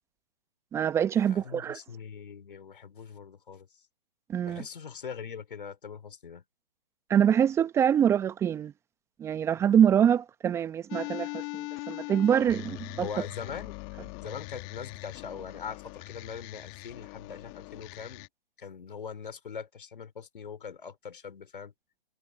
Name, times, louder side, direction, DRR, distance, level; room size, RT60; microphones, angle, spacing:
voice 1, 0.7-1.8 4.3-4.6 7.1-8.7 9.2-13.1, right 9 dB, 10° right, 1.0 m, -25 dB
voice 2, 1.3-3.7 4.5-6.4 13.0-13.8 14.2-18.3 18.6-21.7, left 6 dB, 60° left, 3.5 m, -41 dB
sound 1, 10.9-18.3, left 31 dB, 20° left, 1.8 m, -41 dB
figure-of-eight pair, 140°, 29 cm